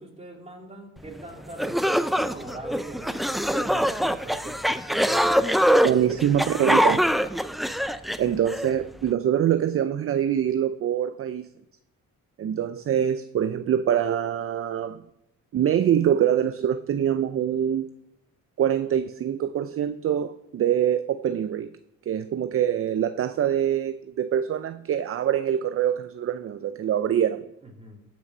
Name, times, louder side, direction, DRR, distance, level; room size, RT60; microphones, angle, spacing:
voice 1, 0.0-5.5 5.9-6.9 27.6-28.0, right 2 dB, 20° right, 0 dB, 3.1 m, -41 dB
sound 1, 1.2-1.3 1.6-8.7, equal, ahead, 0.5 m, -23 dB
voice 2, 5.8-7.1 8.2-11.5 12.4-15.0 15.5-17.9 18.6-21.7 22.1-27.5, right 9 dB, 50° right, 11 dB, 0.6 m, -24 dB
15.5 x 6.2 x 5.5 m, 0.83 s
cardioid pair, 90°, 30 cm